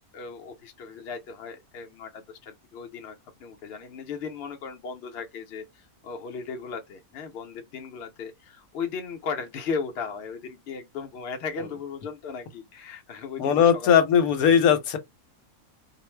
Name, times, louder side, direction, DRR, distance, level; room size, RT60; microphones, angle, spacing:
voice 1, 0.1-5.6 6.0-13.9, left 5 dB, 55° left, 0.8 m, -36 dB
voice 2, 13.4-15.0, left 8 dB, 85° left, 1.1 m, -19 dB
2.5 x 2.0 x 3.1 m
omnidirectional pair, 1.5 m